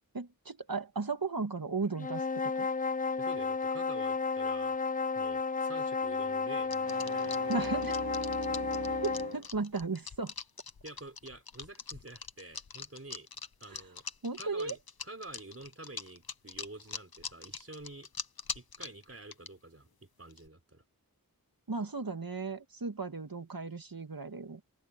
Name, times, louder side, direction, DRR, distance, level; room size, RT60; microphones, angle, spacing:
voice 1, 0.1-2.7 7.5-8.0 9.0-10.3 14.2-14.8 21.7-24.6, right 4 dB, 70° right, 2.1 m, -35 dB
sound 1, 2.0-9.4, left 4 dB, 25° left, 0.4 m, -32 dB
voice 2, 3.2-4.8 5.1-6.8 7.0-7.9 10.8-13.3 13.6-14.0 14.4-18.1 18.5-20.8, right 2 dB, 40° right, 4.2 m, -48 dB
sound 2, 6.7-19.5 20.3-20.5, left 5 dB, 85° left, 1.0 m, -42 dB
sound 3, 6.7-9.5, right 4 dB, 90° right, 1.5 m, -42 dB
open air
wide cardioid pair, 40°, 36 cm